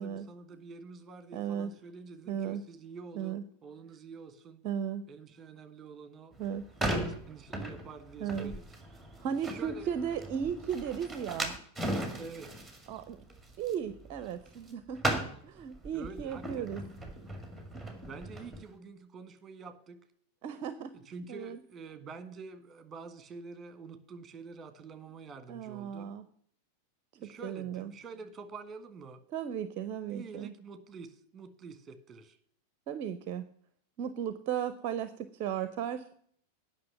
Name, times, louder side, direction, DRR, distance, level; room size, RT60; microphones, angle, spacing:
voice 1, 0.0-4.7 5.1-6.4 6.9-9.0 9.4-9.9 12.2-12.6 15.9-16.8 18.1-20.0 20.9-26.1 27.1-29.2 30.1-32.4, right 4 dB, 20° right, 10 dB, 1.5 m, -47 dB
voice 2, 1.3-1.7 2.3-2.6 3.2-3.4 4.6-5.0 6.4-6.6 8.2-8.5 9.2-11.5 12.9-13.2 13.6-15.0 15.4-16.8 20.4-20.9 21.3-21.6 25.5-26.2 27.2-27.9 29.3-30.5 32.9-33.4 34.0-36.1, right 8 dB, 40° right, 12 dB, 0.6 m, -35 dB
sound 1, 6.3-14.7 15.0-18.6, right 1 dB, ahead, 2.1 m, -37 dB
9.6 x 5.9 x 8.4 m, 0.62 s
figure-of-eight pair, 90°, 0 cm